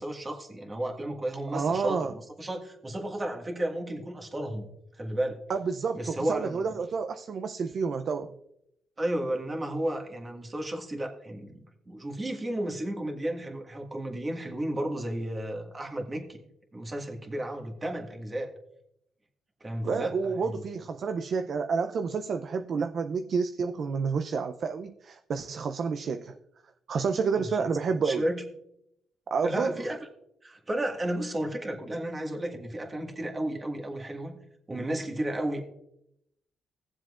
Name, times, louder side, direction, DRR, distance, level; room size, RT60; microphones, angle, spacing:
voice 1, 0.0-4.7 5.0-5.4 5.9-6.6 9.0-16.4 16.7-18.5 19.6-20.6 27.3-27.7 28.0-28.4 29.4-30.0 30.4-34.4 34.7-35.6, right 1 dB, 25° right, 2 dB, 1.7 m, -33 dB
voice 2, 1.5-2.1 5.5-8.3 19.8-26.3 26.9-28.2 29.3-29.7, right 5 dB, 55° right, 8 dB, 0.5 m, -29 dB
17.0 x 7.4 x 2.5 m, 0.79 s
cardioid pair, 90°, 0 cm